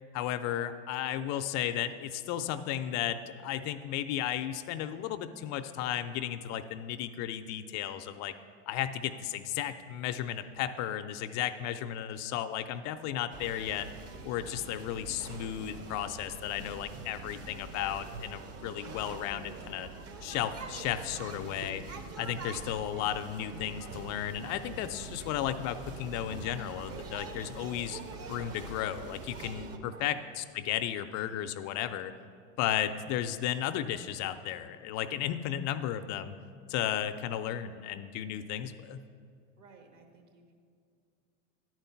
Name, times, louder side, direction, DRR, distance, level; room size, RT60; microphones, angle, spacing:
voice 1, 0.1-8.3 8.7-13.9 14.2-19.9 20.2-21.8 22.2-28.0 28.3-32.1 32.6-36.4 36.7-39.0, left 11 dB, 50° left, 10 dB, 0.4 m, -34 dB
sound 1, 13.3-29.8, right 4 dB, 40° right, 0.8 m, -44 dB
voice 2, 39.6-40.5, right 4 dB, 65° right, 4 dB, 1.4 m, -55 dB
10.5 x 4.5 x 5.7 m, 2.3 s
hypercardioid pair, 95°, 37 cm